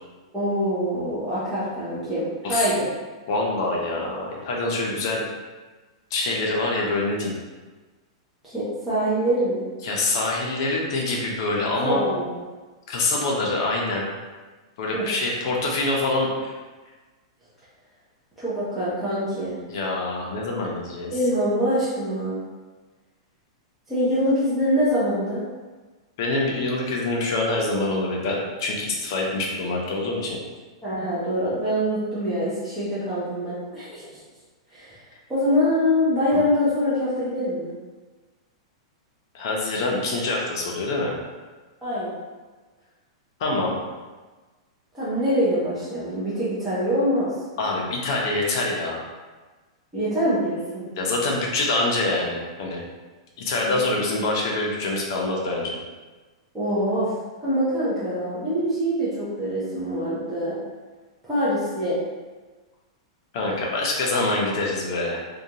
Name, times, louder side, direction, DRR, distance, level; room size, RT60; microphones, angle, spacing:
voice 1, 0.3-2.9 8.4-9.6 11.8-12.3 14.9-15.1 18.4-19.6 21.1-22.4 23.9-25.4 30.8-34.1 34.7-35.0 35.3-37.7 41.8-42.2 44.9-47.3 49.9-50.8 53.6-53.7 56.5-57.1 57.4-60.6 61.2-62.0, equal, 5° right, -12 dB, 0.5 m, -24 dB
voice 2, 3.3-5.3 6.1-7.3 9.8-12.0 12.9-14.1 14.8-16.5 19.7-21.1 26.2-30.4 36.3-36.4 39.3-41.1 43.4-43.8 47.6-49.1 51.0-52.8 53.4-55.8 63.3-65.2, left 2 dB, 45° left, -2 dB, 0.5 m, -25 dB
2.5 x 2.2 x 2.8 m, 1.3 s
supercardioid pair, 170°, 3 cm